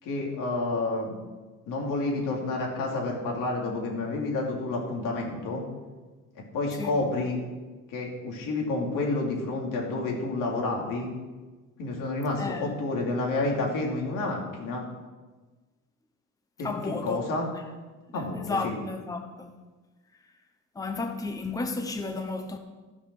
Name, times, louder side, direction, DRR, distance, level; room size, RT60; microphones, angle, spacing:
voice 1, 0.0-1.2 1.7-5.6 6.5-7.4 7.9-11.1 11.8-14.8 16.6-17.5 18.1-18.7, left 2 dB, 85° left, 2.9 m, -29 dB
voice 2, 6.7-7.0 11.9-12.0 12.4-12.7 16.6-17.2 18.1-19.6 20.7-22.6, left 3 dB, 10° left, 0.8 m, -33 dB
13.0 x 7.1 x 6.2 m
cardioid pair, 140°, 32 cm